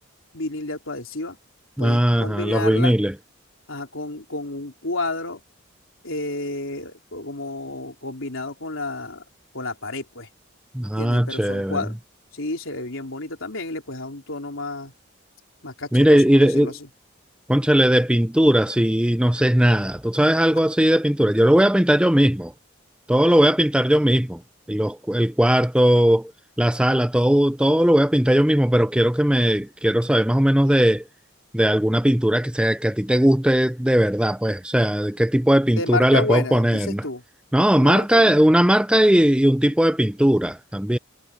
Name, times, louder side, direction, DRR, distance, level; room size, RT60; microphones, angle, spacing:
voice 1, 0.3-1.4 1.8-2.9 3.7-5.4 6.0-9.2 9.5-10.3 11.0-12.0 12.3-14.9 15.6-16.8 35.7-37.2 37.8-38.4, left 2 dB, 75° left, 3.6 m, -30 dB
voice 2, 1.8-3.1 10.7-11.8 15.9-16.7 17.5-22.5 23.1-24.4 24.7-26.3 26.6-31.0 31.5-37.1 37.5-41.0, equal, 5° right, 0.5 m, -18 dB
head